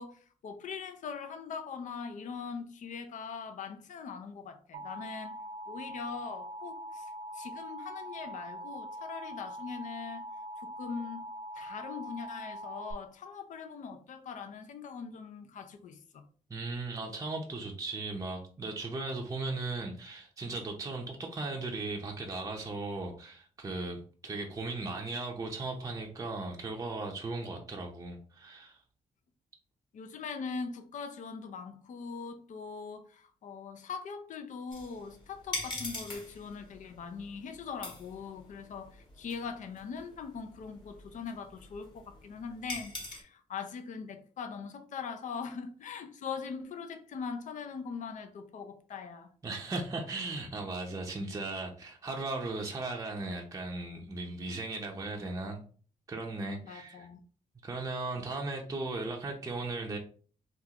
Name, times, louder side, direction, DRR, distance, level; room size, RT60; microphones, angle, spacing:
voice 1, 0.0-5.4 5.7-10.2 10.6-11.2 11.5-16.2 29.9-49.3 56.6-57.2, left 5 dB, 60° left, 0.6 m, -41 dB
Alarm, 4.7-12.9, right 1 dB, 75° right, 0.5 m, -43 dB
voice 2, 16.5-28.8 49.4-55.6 56.1-57.1 57.6-60.0, right 3 dB, 20° right, 0.6 m, -37 dB
sound 1, 34.7-43.2, left 2 dB, 35° left, 1.5 m, -44 dB
3.7 x 2.4 x 2.9 m
cardioid pair, 90°, 14 cm